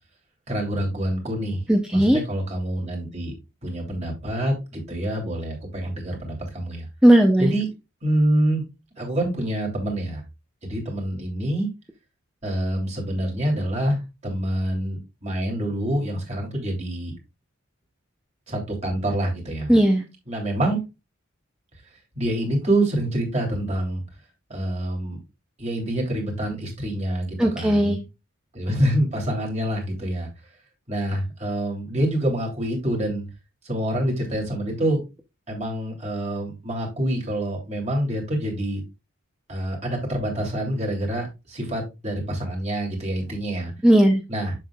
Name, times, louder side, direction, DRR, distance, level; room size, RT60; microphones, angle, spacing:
voice 1, 0.5-1.6 1.9-3.3 3.6-6.9 7.4-7.7 8.0-8.6 9.0-10.2 10.6-11.7 12.4-17.1 18.5-19.7 20.3-20.8 22.1-24.0 24.5-25.2 25.6-28.0 28.5-30.3 30.9-33.2 33.6-35.0 35.5-38.8 39.5-43.7 44.3-44.5, right 1 dB, 35° right, 0 dB, 2.9 m, -26 dB
voice 2, 1.7-2.2 7.0-7.5 19.7-20.0 27.4-28.0 43.8-44.2, right 1 dB, 5° right, 2 dB, 0.6 m, -16 dB
7.6 x 7.4 x 2.4 m, 0.26 s
head